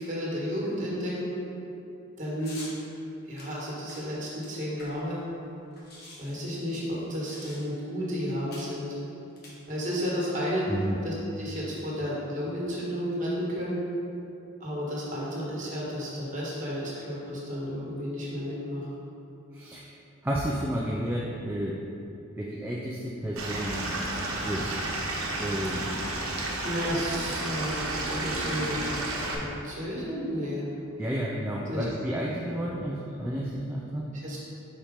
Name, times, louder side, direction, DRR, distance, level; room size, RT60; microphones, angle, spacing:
voice 1, 0.0-1.3 2.2-2.6 3.3-5.2 6.2-8.9 9.7-10.7 11.0-13.8 14.6-18.9 26.6-27.8 28.1-28.9 29.2-30.7 31.7-31.8 32.5-32.6 34.2-34.4, equal, 35° right, -6 dB, 1.4 m, -32 dB
sound 1, 2.4-2.8 3.4-5.2 5.4-5.5 5.7-7.9 8.5-8.8 9.3-10.1, left 2 dB, 50° left, 1.1 m, -47 dB
voice 2, 19.5-19.9 20.2-21.8 22.4-23.9 24.4-24.9 25.4-25.9 31.0-34.1, equal, 10° right, -4 dB, 0.3 m, -31 dB
Stream / Liquid, 23.4-29.4, right 2 dB, 85° right, 0.9 m, -32 dB
4.4 x 4.4 x 5.0 m, 2.8 s
head